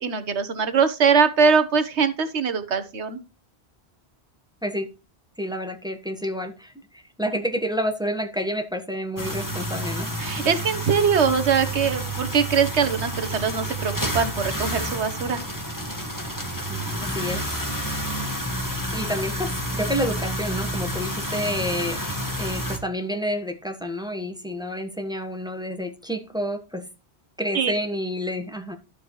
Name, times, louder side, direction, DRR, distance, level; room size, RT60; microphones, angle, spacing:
voice 1, 0.0-3.2 10.2-15.4 27.5-27.7, right 6 dB, 85° right, 10 dB, 1.4 m, -22 dB
voice 2, 5.4-10.1 16.7-17.4 18.9-22.1 22.4-26.8 27.4-28.8, equal, 5° right, 5 dB, 1.4 m, -29 dB
sound 1, 9.2-22.8, right 1 dB, 15° left, 1.9 m, -29 dB
12.0 x 7.0 x 3.1 m, 0.30 s
omnidirectional pair, 1.1 m